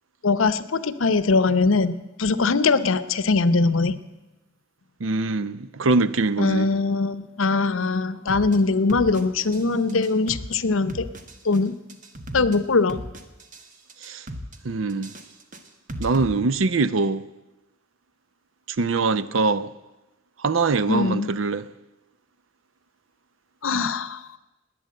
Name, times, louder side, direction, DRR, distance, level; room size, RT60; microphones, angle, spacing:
voice 1, 0.2-4.0 6.4-11.1 11.4-11.7 12.3-13.0 20.9-21.3 23.6-24.2, left 3 dB, 85° left, 0.8 m, -21 dB
voice 2, 5.0-6.7 14.0-14.3 14.6-15.1 16.0-17.2 18.7-19.7 20.4-21.7, right 3 dB, 75° right, 0.6 m, -23 dB
sound 1, 8.3-8.6 8.9-9.6 9.9-10.6 10.9-11.6 11.9-12.6 12.9-13.6 13.9-14.6 14.9-16.3, equal, 40° right, 1.4 m, -36 dB
20.0 x 9.4 x 7.7 m
head